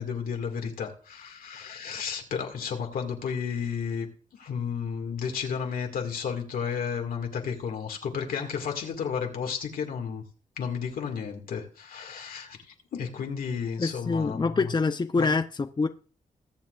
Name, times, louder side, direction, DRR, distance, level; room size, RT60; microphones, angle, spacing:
voice 1, 0.0-10.2 10.6-14.7 15.2-15.3, left 6 dB, 80° left, 2.1 m, -32 dB
voice 2, 13.8-15.9, left 4 dB, 30° left, 0.7 m, -26 dB
21.5 x 7.4 x 2.5 m
cardioid pair, 55°, 15 cm